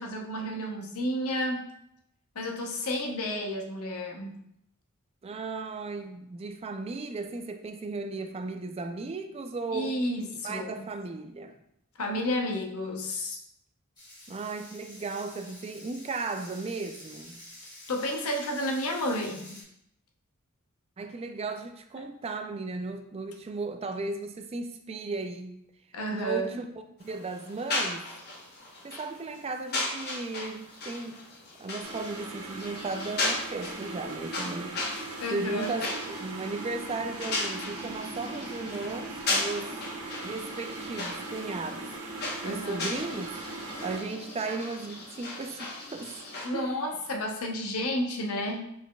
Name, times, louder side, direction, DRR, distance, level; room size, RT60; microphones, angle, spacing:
voice 1, 0.0-1.7 2.3-4.4 9.7-10.8 12.0-13.4 17.9-19.6 25.9-26.6 35.2-35.7 42.4-42.8 46.4-48.6, equal, 90° left, 2 dB, 0.7 m, -31 dB
voice 2, 5.2-10.0 10.4-11.6 14.3-17.4 21.0-25.6 26.1-26.7 27.0-28.1 28.8-31.2 31.6-34.8 35.3-35.9 36.2-39.8 40.2-41.9 42.4-43.3 43.8-46.2 46.5-46.9, right 3 dB, 30° right, 6 dB, 0.3 m, -35 dB
sound 1, 14.0-19.6, left 1 dB, 20° left, 1.7 m, -49 dB
sound 2, 27.0-46.5, left 2 dB, 50° left, 1.0 m, -36 dB
sound 3, 31.8-44.0, right 2 dB, 80° right, 0.9 m, -40 dB
5.0 x 4.2 x 2.2 m, 0.77 s
head